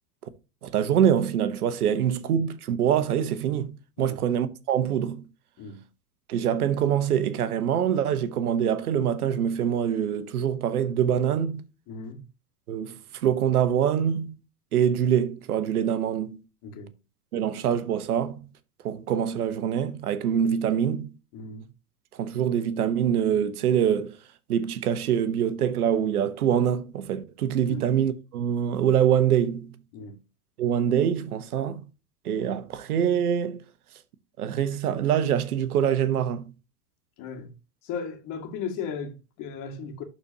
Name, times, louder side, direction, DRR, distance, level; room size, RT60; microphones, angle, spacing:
voice 1, 0.6-5.2 6.3-11.6 12.7-14.3 14.7-16.4 17.3-18.4 18.8-21.1 22.2-24.1 24.5-29.7 30.6-31.8 32.2-33.6 34.4-36.5, right 9 dB, 75° right, 1.0 m, -24 dB
voice 2, 11.9-12.2 16.6-16.9 21.3-21.7 27.7-27.9 29.9-30.2 37.2-37.5 37.8-40.0, left 5 dB, 45° left, 2.1 m, -36 dB
12.0 x 4.3 x 2.8 m
hypercardioid pair, 95°, 45 cm